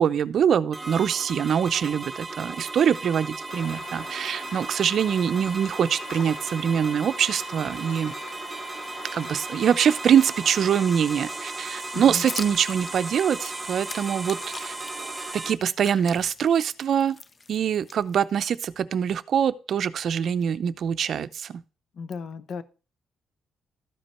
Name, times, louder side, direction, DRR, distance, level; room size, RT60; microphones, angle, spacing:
voice 1, 0.0-8.1 9.1-14.7 15.3-17.2 17.5-21.6, right 8 dB, 60° right, 0.5 m, -24 dB
sound 1, 0.7-15.5, right 3 dB, 15° right, 0.9 m, -36 dB
sound 2, 3.5-15.4, left 6 dB, 90° left, 1.2 m, -45 dB
sound 3, 11.7-14.9 15.4-18.5, left 3 dB, 30° left, 0.5 m, -41 dB
voice 2, 22.0-22.6, left 5 dB, 60° left, 0.7 m, -35 dB
13.0 x 5.2 x 4.3 m
cardioid pair, 90°, 0 cm